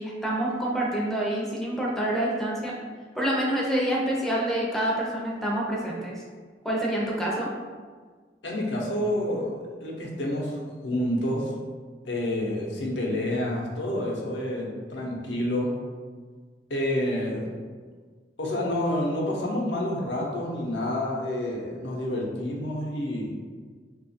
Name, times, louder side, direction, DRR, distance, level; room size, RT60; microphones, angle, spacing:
voice 1, 0.0-2.7 3.1-6.1 6.6-7.5, right 1 dB, ahead, -4 dB, 0.5 m, -27 dB
voice 2, 8.4-11.5 12.0-15.7 16.7-17.5 18.4-23.5, left 1 dB, 75° left, -2 dB, 0.7 m, -28 dB
2.8 x 2.4 x 4.1 m, 1.5 s
head